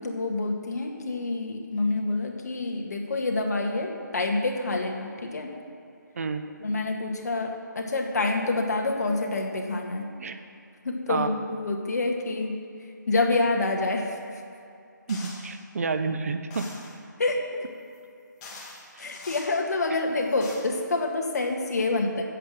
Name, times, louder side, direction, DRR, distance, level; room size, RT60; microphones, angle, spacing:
voice 1, 0.0-5.5 6.6-10.1 10.8-12.6 13.1-14.1 17.2-17.7 19.0-22.2, left 2 dB, 55° left, 2 dB, 1.9 m, -27 dB
sound 1, 15.1-15.6 16.5-17.0 17.9-18.0 18.4-19.5 20.2-20.6, left 3 dB, 15° left, 1.7 m, -43 dB
voice 2, 15.1-16.6 19.0-19.1, right 4 dB, 50° right, 8 dB, 0.9 m, -29 dB
11.5 x 8.1 x 7.6 m, 2.5 s
figure-of-eight pair, 155°, 10 cm